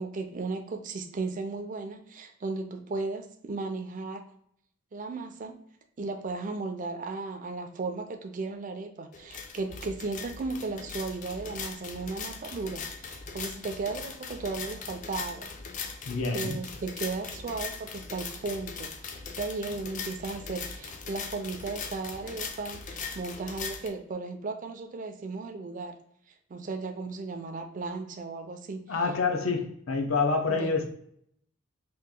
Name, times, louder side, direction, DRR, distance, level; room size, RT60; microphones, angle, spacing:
voice 1, 0.0-4.2 4.9-5.6 6.0-15.5 16.3-26.0 26.5-28.9 30.5-30.8, right 3 dB, 40° right, 6 dB, 0.4 m, -35 dB
sound 1, 9.1-23.9, left 5 dB, 40° left, 0.4 m, -40 dB
voice 2, 16.1-16.6 28.9-30.8, left 4 dB, 75° left, 2 dB, 0.7 m, -27 dB
2.9 x 2.4 x 3.7 m, 0.68 s
head